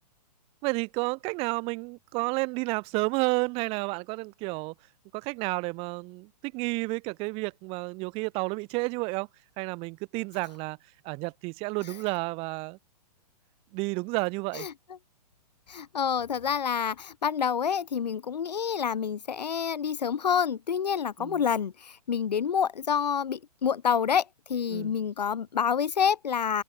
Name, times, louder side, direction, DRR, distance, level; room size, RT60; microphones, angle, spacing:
voice 1, 0.6-4.7 5.1-9.3 9.6-10.8 11.0-12.8 13.7-14.7 21.2-21.4 24.7-24.9, right 27 dB, 25° right, 0.8 m, -31 dB
voice 2, 15.7-24.2 24.5-26.6, left 7 dB, 80° left, 0.8 m, -28 dB
hypercardioid pair, 125°, 21 cm